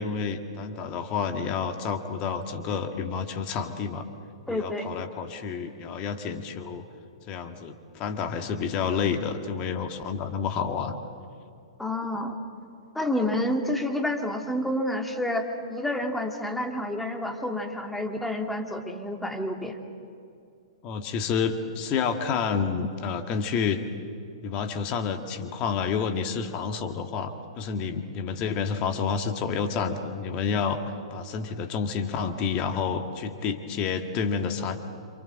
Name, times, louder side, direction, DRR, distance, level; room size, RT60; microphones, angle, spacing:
voice 1, 0.0-4.1 4.5-6.8 7.3-11.0 20.8-23.8 24.4-34.8, left 6 dB, 30° left, 7 dB, 1.9 m, -29 dB
voice 2, 4.5-4.9 11.8-12.4 12.9-19.8, left 1 dB, 5° left, 4 dB, 2.3 m, -29 dB
28.5 x 26.5 x 7.8 m, 2.4 s
figure-of-eight pair, 110°, 3 cm